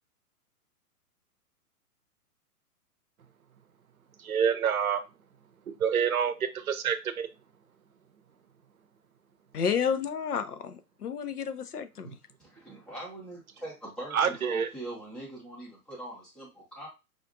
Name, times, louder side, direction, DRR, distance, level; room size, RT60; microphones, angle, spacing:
voice 1, 4.2-5.0 5.7-7.3 12.1-12.2 14.1-14.7, right 7 dB, 65° right, 11 dB, 0.7 m, -27 dB
voice 2, 9.5-12.2, left 7 dB, 75° left, 10 dB, 0.7 m, -31 dB
voice 3, 12.4-16.9, right 1 dB, ahead, -5 dB, 0.5 m, -42 dB
5.0 x 2.4 x 2.6 m, 0.27 s
figure-of-eight pair, 115°, 45 cm